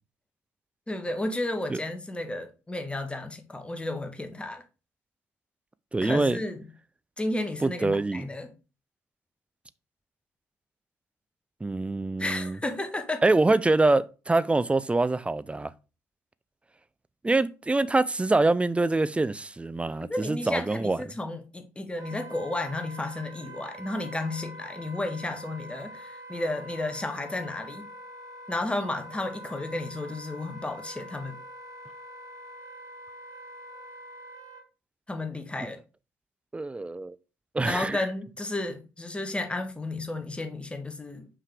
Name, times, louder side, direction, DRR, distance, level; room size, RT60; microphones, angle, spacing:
voice 1, 0.9-4.6 6.0-6.7 7.2-8.5 12.2-13.2 20.1-27.9 28.5-31.4 35.1-35.8 37.6-41.3, left 2 dB, 15° left, 1.4 m, -32 dB
voice 2, 5.9-6.4 7.6-8.3 11.6-12.6 13.2-15.7 17.2-21.0 36.5-37.2 37.5-38.1, right 2 dB, 15° right, 0.5 m, -25 dB
Wind instrument woodwind instrument, 22.0-34.6, right 1 dB, 45° right, 1.7 m, -45 dB
5.6 x 4.8 x 3.5 m
hypercardioid pair, 45°, 8 cm